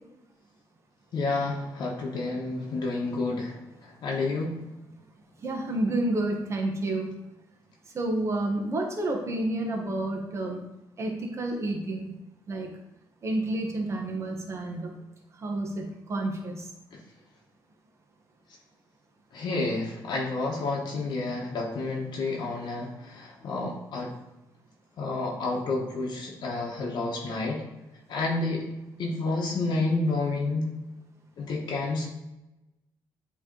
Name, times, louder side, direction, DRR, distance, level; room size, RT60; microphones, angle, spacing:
voice 1, 1.1-4.6 16.9-17.0 19.3-24.1 25.0-27.6 28.1-28.6 29.0-30.7 31.4-32.1, left 3 dB, 65° left, -2 dB, 1.0 m, -30 dB
voice 2, 5.4-7.1 7.9-10.6 11.0-12.1 12.5-12.7 13.2-14.9 15.4-16.7, right 2 dB, 35° right, 1 dB, 1.1 m, -30 dB
8.3 x 3.1 x 3.8 m, 0.96 s
cardioid pair, 120°, 8 cm